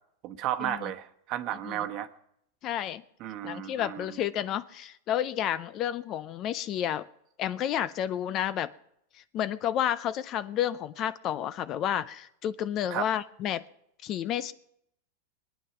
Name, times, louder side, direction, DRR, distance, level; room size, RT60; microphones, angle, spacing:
voice 1, 0.2-2.1 3.2-4.0 12.9-13.1, right 12 dB, 45° right, 7 dB, 1.1 m, -33 dB
voice 2, 2.6-3.0 3.4-7.0 7.4-8.7 9.3-13.6 14.0-14.5, left 10 dB, 35° left, 16 dB, 0.5 m, -30 dB
23.0 x 9.3 x 5.8 m, 0.76 s
supercardioid pair, 140°, 0 cm